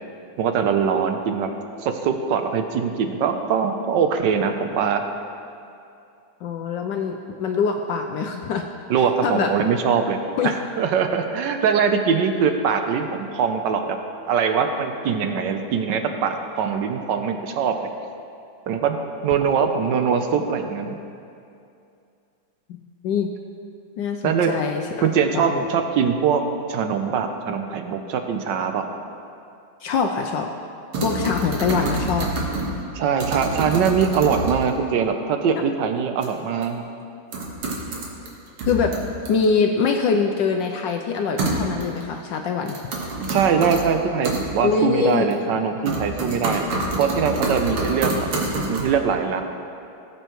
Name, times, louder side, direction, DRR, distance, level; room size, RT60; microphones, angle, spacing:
voice 1, 0.4-1.5 1.8-5.0 8.9-10.2 10.4-14.0 14.3-17.9 18.7-19.0 19.2-21.0 24.2-24.5 25.0-26.4 26.7-28.8 32.9-36.8 43.3-46.7 47.0-48.1 48.7-49.4, right 6 dB, 70° right, 6 dB, 1.2 m, -22 dB
voice 2, 6.4-8.7 9.0-9.5 10.4-10.5 23.0-23.3 24.0-25.1 25.3-25.7 29.8-30.5 31.0-32.3 38.6-38.9 39.3-42.8 44.6-45.2, left 5 dB, 75° left, 3 dB, 1.1 m, -23 dB
sound 1, 30.9-32.8 33.2-34.7 36.2-36.3 36.6-36.7 37.3-38.3 38.6-39.5 41.4-42.0 42.7-43.8 44.2-44.4 45.1-45.6 45.9-48.8, right 2 dB, 85° right, 2.3 m, -26 dB
18.5 x 7.8 x 3.1 m, 2.5 s
omnidirectional pair, 2.4 m